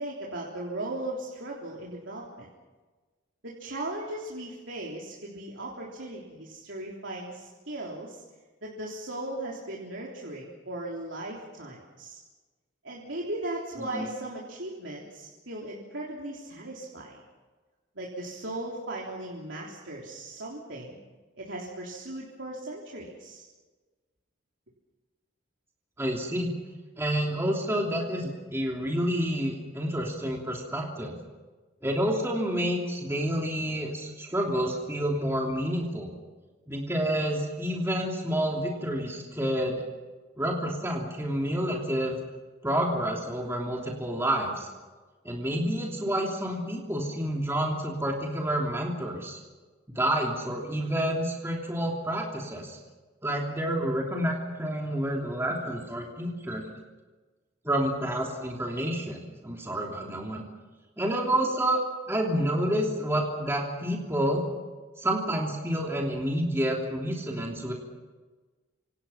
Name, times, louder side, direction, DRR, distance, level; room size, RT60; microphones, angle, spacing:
voice 1, 0.0-2.5 3.4-8.2 8.6-12.2 12.8-17.2 18.0-21.0 21.4-23.4, right 1 dB, 75° right, -3 dB, 3.6 m, -37 dB
voice 2, 26.0-26.5 27.0-31.1 31.8-36.1 36.7-39.8 40.4-42.2 42.6-44.7 45.2-49.4 49.9-52.8 53.2-56.7 57.6-60.5 61.0-61.8 62.1-64.4 65.0-67.7, right 1 dB, 15° right, -1 dB, 3.1 m, -29 dB
27.5 x 27.0 x 5.8 m, 1.3 s
head